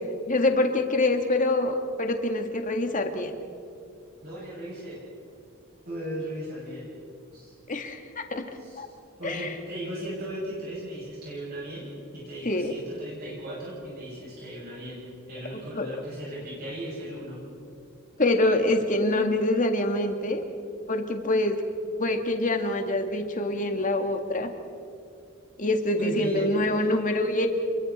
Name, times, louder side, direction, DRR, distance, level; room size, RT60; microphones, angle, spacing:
voice 1, 0.3-3.3 7.7-8.9 9.2-9.5 12.5-12.7 15.7-15.9 18.2-20.4 20.9-21.6 22.0-24.5 25.6-27.5, left 2 dB, 40° left, 5 dB, 2.0 m, -25 dB
voice 2, 4.2-5.0 5.9-6.9 7.3-7.5 8.6-8.8 9.2-11.8 12.1-15.0 15.3-17.4 26.0-26.9, right 1 dB, 50° right, -7 dB, 7.2 m, -37 dB
30.0 x 22.5 x 4.3 m, 2.5 s
head